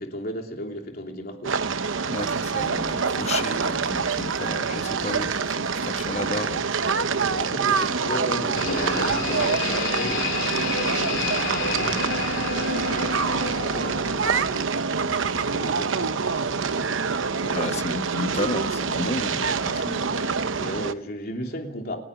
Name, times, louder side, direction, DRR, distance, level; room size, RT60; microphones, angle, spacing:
voice 1, 0.0-1.6 7.1-17.8 19.6-22.0, equal, 50° left, 3.1 m, -37 dB
sound 1, 1.4-20.9, right 5 dB, 85° right, 0.9 m, -26 dB
voice 2, 2.1-6.7 17.5-20.1, left 2 dB, 35° left, 1.0 m, -32 dB
sound 2, 8.5-14.6, left 4 dB, 70° left, 2.7 m, -30 dB
29.5 x 10.5 x 9.9 m
head